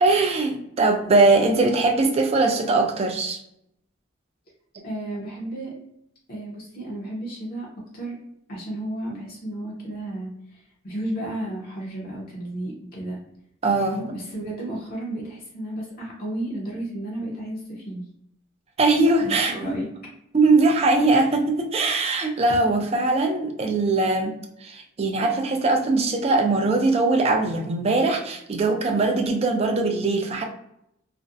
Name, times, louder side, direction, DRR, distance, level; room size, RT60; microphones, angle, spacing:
voice 1, 0.0-3.4 13.6-14.0 18.8-19.8 20.3-24.3 24.6-30.4, right 3 dB, 30° right, 3 dB, 0.3 m, -21 dB
voice 2, 4.8-5.8 6.3-8.2 8.5-13.2 13.8-18.0 19.2-19.9, right 1 dB, 45° left, -4 dB, 0.6 m, -33 dB
2.4 x 2.0 x 2.5 m, 0.76 s
head